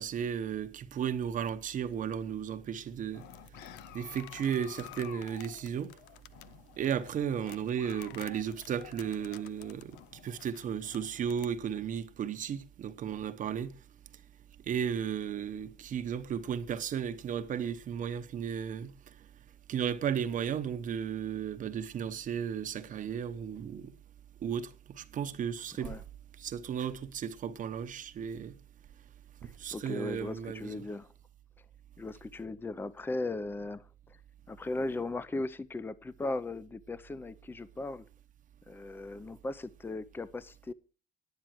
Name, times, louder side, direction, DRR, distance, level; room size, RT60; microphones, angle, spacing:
voice 1, 0.0-3.3 3.9-5.9 6.8-13.8 14.7-18.9 19.7-23.9 24.4-26.0 26.4-28.5 29.4-30.9, right 8 dB, 50° right, 0.9 m, -34 dB
sound 1, 3.1-11.5, left 13 dB, 90° left, 0.5 m, -51 dB
voice 2, 29.4-31.1 32.0-34.2 34.5-38.0 38.7-40.7, left 2 dB, 10° left, 0.6 m, -37 dB
10.0 x 9.2 x 6.1 m
cardioid pair, 110°, 17 cm